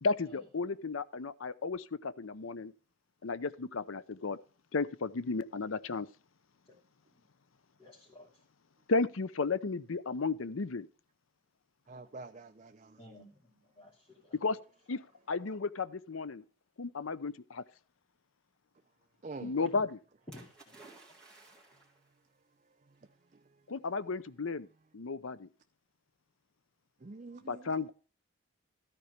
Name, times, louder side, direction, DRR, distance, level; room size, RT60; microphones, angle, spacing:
voice 1, 0.0-2.7 3.2-4.4 4.7-6.1 8.9-10.9 14.4-14.6 14.9-15.0 15.3-16.4 16.8-17.6 19.4-19.9 23.7-24.7 24.9-25.5 27.5-27.9, left 4 dB, 85° left, 0.7 m, -33 dB
voice 2, 7.8-8.4 13.0-14.6 19.5-19.8 20.3-20.8, left 1 dB, 20° left, 2.6 m, -54 dB
voice 3, 11.9-13.0 19.2-19.5 27.0-27.7, right 3 dB, 35° right, 0.5 m, -46 dB
Splash splatter, 20.3-22.1 23.0-23.1, right 3 dB, 5° left, 2.8 m, -56 dB
13.5 x 4.6 x 6.6 m
head